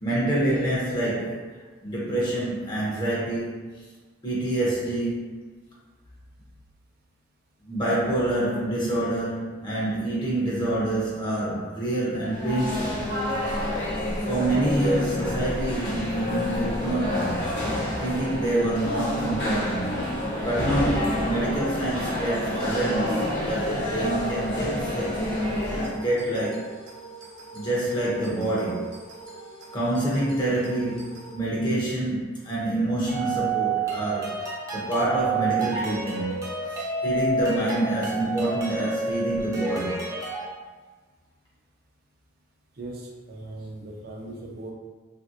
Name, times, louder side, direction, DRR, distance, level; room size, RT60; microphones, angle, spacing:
voice 1, 0.0-3.9 4.2-5.4 7.7-13.1 14.3-17.4 18.0-20.1 20.4-25.2 25.9-26.7 27.5-29.0 29.7-34.4 34.7-36.3 36.7-40.0, right 1 dB, 25° left, -6 dB, 0.6 m, -27 dB
sound 1, 12.2-25.9, left 1 dB, 65° left, 1.0 m, -29 dB
sound 2, 25.8-31.3, right 3 dB, 75° right, 0.9 m, -44 dB
sound 3, 33.1-40.5, right 3 dB, 15° right, 0.6 m, -29 dB
voice 2, 42.7-44.7, right 2 dB, 55° right, -1 dB, 0.6 m, -39 dB
3.3 x 2.6 x 2.5 m, 1.4 s
head